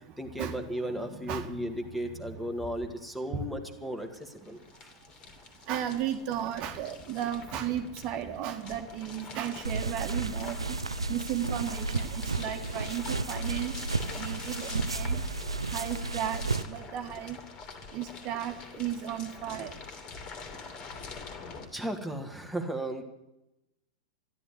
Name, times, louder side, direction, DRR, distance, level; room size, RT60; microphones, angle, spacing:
voice 1, 0.2-4.9 21.7-23.0, right 1 dB, ahead, 5 dB, 1.8 m, -35 dB
voice 2, 0.9-1.6 2.1-2.2 3.3-3.4 5.7-10.6 11.1-13.7 14.2-15.2 15.7-17.4 17.9-19.7, right 10 dB, 40° right, 7 dB, 1.7 m, -34 dB
sound 1, 3.0-3.1 3.2-21.7, left 4 dB, 30° left, 2.8 m, -45 dB
sound 2, 9.6-16.6, right 3 dB, 80° right, 0.7 m, -33 dB
13.5 x 11.0 x 9.6 m, 0.91 s
figure-of-eight pair, 95°, 3 cm